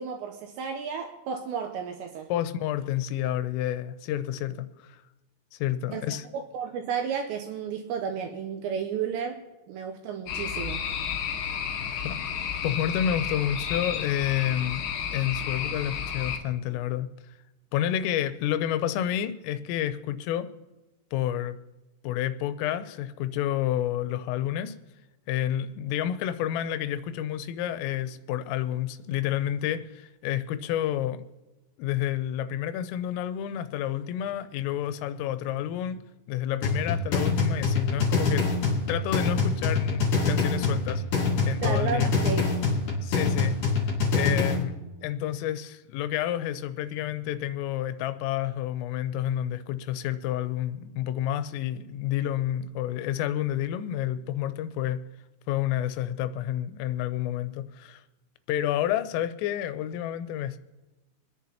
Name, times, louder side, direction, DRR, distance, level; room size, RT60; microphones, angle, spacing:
voice 1, 0.0-2.3 5.9-10.8 41.6-42.6, right 7 dB, 80° right, 4 dB, 2.6 m, -33 dB
voice 2, 2.3-5.0 5.5-6.3 11.9-12.2 12.6-17.1 17.7-20.5 21.1-21.6 22.0-24.7 25.3-31.3 31.8-36.0 36.3-42.1 43.0-43.6 44.1-44.7 45.0-55.0 55.5-58.0 58.5-60.6, left 11 dB, 90° left, 11 dB, 3.2 m, -30 dB
sound 1, 10.3-16.4, left 8 dB, 75° left, 2.1 m, -32 dB
sound 2, 36.6-44.6, left 4 dB, 50° left, 3.1 m, -25 dB
26.0 x 10.5 x 2.9 m, 1.1 s
omnidirectional pair, 5.8 m